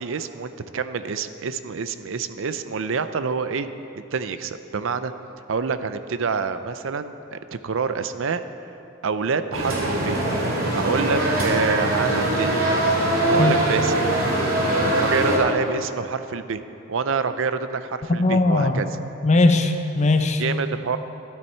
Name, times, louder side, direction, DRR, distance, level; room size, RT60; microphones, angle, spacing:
voice 1, 0.0-3.7 4.1-5.1 5.5-8.4 9.0-10.2 10.5-12.6 13.3-14.0 14.8-16.6 16.9-18.9 20.4-21.0, right 5 dB, 65° right, 11 dB, 0.5 m, -27 dB
sound 1, 9.5-15.4, right 1 dB, 85° right, 2.5 m, -22 dB
voice 2, 18.1-18.8 19.2-20.4, left 2 dB, 35° left, 6 dB, 0.7 m, -19 dB
13.0 x 11.5 x 4.5 m, 2.7 s
head